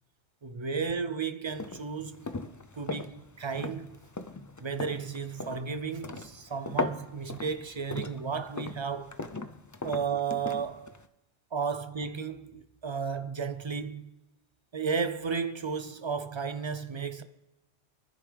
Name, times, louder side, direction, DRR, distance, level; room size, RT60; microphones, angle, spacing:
voice 1, 0.4-2.3 2.8-3.9 4.6-9.1 9.8-11.0 11.5-14.1 14.7-17.2, right 5 dB, 40° right, 0.4 m, -33 dB
sound 1, 1.5-11.1, left 3 dB, 30° left, 0.3 m, -39 dB
25.0 x 10.5 x 3.4 m
omnidirectional pair, 1.2 m